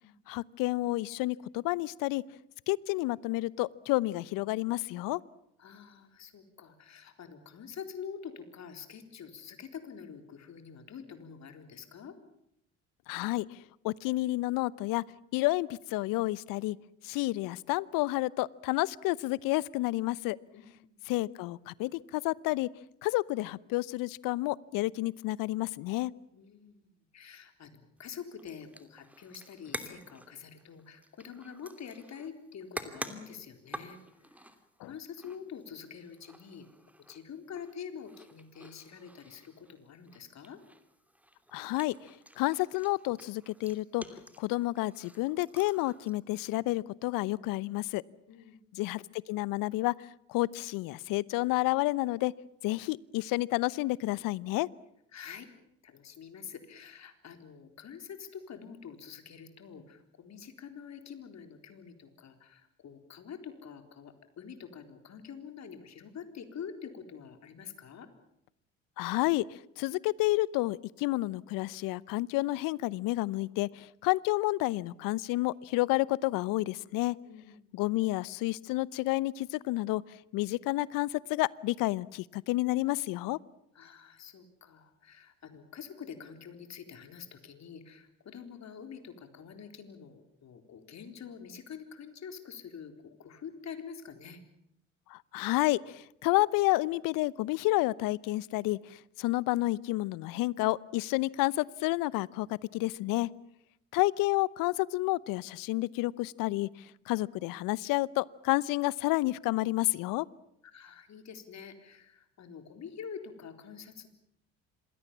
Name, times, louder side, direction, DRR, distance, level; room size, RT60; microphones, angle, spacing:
voice 1, 0.3-2.2 2.7-5.2 13.1-13.6 13.8-15.0 15.3-16.8 17.0-20.4 21.1-22.7 23.0-26.1 34.8-34.9 41.5-41.9 42.4-44.0 44.4-48.0 48.8-52.3 52.6-54.7 69.0-77.2 77.7-80.0 80.3-83.4 95.1-103.3 103.9-106.7 107.1-110.3, left 19 dB, 60° left, 22 dB, 0.9 m, -30 dB
voice 2, 5.6-12.2 20.5-21.0 26.3-34.5 34.8-36.7 37.1-40.6 48.3-48.6 55.1-55.5 55.8-68.1 77.2-77.7 83.7-94.4 110.7-114.1, left 7 dB, 45° left, 7 dB, 4.0 m, -46 dB
sound 1, 28.0-46.1, equal, 5° right, 3.0 m, -48 dB
27.0 x 20.5 x 7.3 m, 0.78 s
hypercardioid pair, 60°, 37 cm